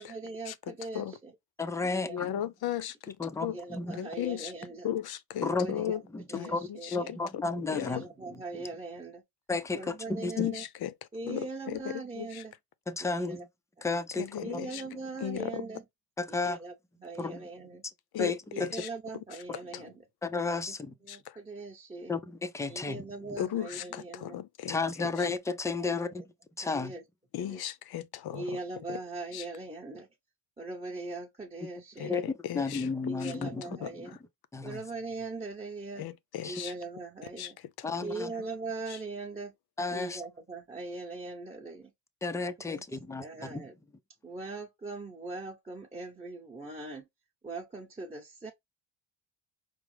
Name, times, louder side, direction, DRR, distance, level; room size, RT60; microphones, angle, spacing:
voice 1, 0.0-1.3 1.8-2.2 3.5-4.9 5.4-6.0 6.3-7.1 7.7-9.2 9.7-10.7 11.1-12.5 13.0-13.5 14.4-15.8 16.3-16.7 17.0-17.8 18.5-20.0 20.5-20.7 21.0-22.1 22.7-24.4 25.8-26.1 26.6-27.0 27.4-27.6 28.3-30.1 30.6-32.2 33.1-34.2 34.6-36.1 36.4-37.6 38.0-39.5 39.9-41.9 42.7-42.8 43.2-43.8 44.2-47.1 47.4-48.5, right 3 dB, 15° right, 0.8 m, -41 dB
voice 2, 1.6-2.3 3.2-4.0 5.4-8.1 9.5-10.5 12.9-13.4 13.8-14.5 16.2-16.6 17.2-17.4 18.2-18.8 20.2-20.9 22.1-23.0 24.7-26.2 26.6-26.9 32.1-32.2 32.5-34.1 34.5-34.8 36.4-36.6 37.8-38.3 39.8-40.2 42.2-43.6, left 3 dB, 5° left, 0.3 m, -33 dB
voice 3, 2.1-3.6 4.0-4.5 4.8-6.0 6.3-7.2 7.7-7.9 10.4-10.9 11.2-12.4 14.2-14.8 15.2-15.6 18.1-18.9 19.7-19.8 21.1-21.3 23.4-25.3 27.3-28.6 28.9-29.0 29.3-29.4 32.0-32.9 33.2-33.5 33.8-33.9 36.0-36.7 37.4-37.5 37.8-37.9 38.9-39.0, left 11 dB, 55° left, 0.6 m, -36 dB
4.8 x 2.0 x 3.2 m
cardioid pair, 100°, 46 cm